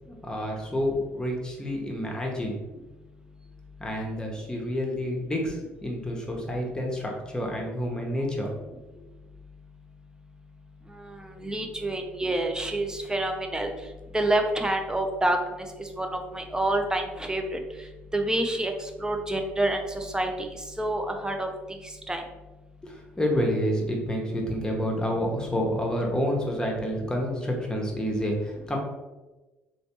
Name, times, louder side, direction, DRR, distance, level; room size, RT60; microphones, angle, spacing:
voice 1, 0.1-2.6 3.8-8.5 22.8-28.8, equal, 10° left, -1 dB, 1.0 m, -29 dB
voice 2, 10.9-13.7 14.1-17.9 18.1-22.2, right 1 dB, 10° right, 4 dB, 0.5 m, -28 dB
3.1 x 3.0 x 2.9 m, 1.1 s
hypercardioid pair, 55°, 7 cm